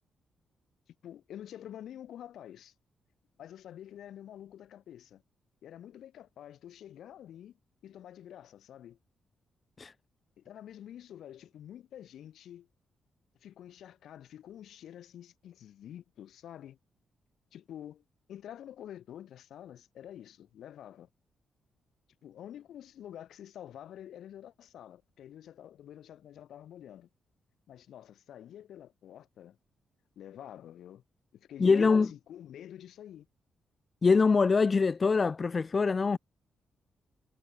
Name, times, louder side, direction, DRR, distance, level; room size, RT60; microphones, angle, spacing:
voice 1, 0.9-2.7 3.4-5.2 5.6-7.6 7.8-9.0 10.4-12.7 13.4-16.8 17.5-18.0 18.3-21.1 22.2-27.1 27.7-29.6 30.2-31.0 31.3-33.3, left 10 dB, 80° left, 7.8 m, -48 dB
voice 2, 31.6-32.1 34.0-36.2, left 4 dB, 35° left, 1.4 m, -24 dB
cardioid pair, 100°, 0 cm